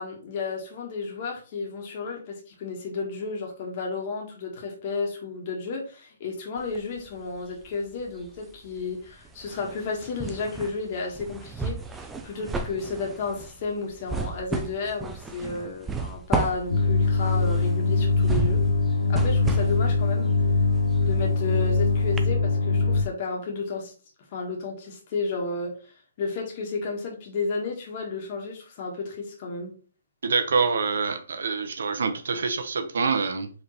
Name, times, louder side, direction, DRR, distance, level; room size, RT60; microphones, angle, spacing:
voice 1, 0.0-18.6 19.1-20.3 21.0-23.9 24.3-25.8 26.2-29.8, left 4 dB, 35° left, 0 dB, 1.4 m, -32 dB
sound 1, 6.6-7.7 8.0-21.8 22.2-22.3, right 4 dB, 5° right, 0.3 m, -33 dB
sound 2, 16.7-23.0, left 3 dB, 85° left, 0.7 m, -22 dB
voice 2, 30.2-33.5, right 5 dB, 70° right, 8 dB, 0.8 m, -26 dB
4.8 x 3.3 x 3.0 m, 0.39 s
hypercardioid pair, 165°, 0 cm